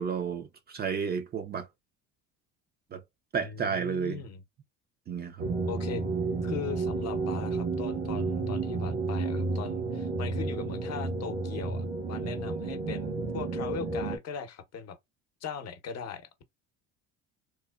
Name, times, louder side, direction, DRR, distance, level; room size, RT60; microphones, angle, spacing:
voice 1, 0.0-1.7 2.9-3.0 3.3-4.2 5.1-5.5, right 6 dB, 30° right, 0.4 m, -32 dB
voice 2, 3.4-4.4 5.7-6.0 6.4-15.0 15.4-16.4, left 7 dB, 50° left, 0.7 m, -39 dB
sound 1, 5.4-14.2, right 3 dB, 80° right, 1.2 m, -31 dB
3.0 x 2.0 x 2.2 m
supercardioid pair, 90°, 33 cm